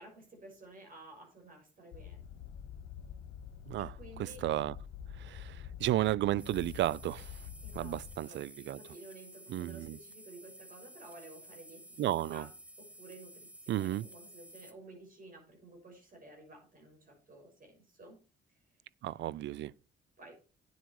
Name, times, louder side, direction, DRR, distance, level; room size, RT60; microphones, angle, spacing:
voice 1, 0.0-2.2 3.8-4.4 7.6-8.0 8.3-8.4 8.8-12.0 12.3-12.5 12.8-18.2 20.2-20.4, right 2 dB, 45° right, 6.3 m, -53 dB
sound 1, 1.9-8.2, left 8 dB, 80° left, 1.7 m, -47 dB
voice 2, 4.2-4.8 5.2-7.5 7.7-8.8 9.5-10.0 12.0-12.4 13.7-14.1 19.0-19.7, right 14 dB, 70° right, 0.4 m, -33 dB
sound 2, 6.4-14.7, equal, 5° right, 1.1 m, -54 dB
9.7 x 8.0 x 4.7 m
cardioid pair, 90°, 20 cm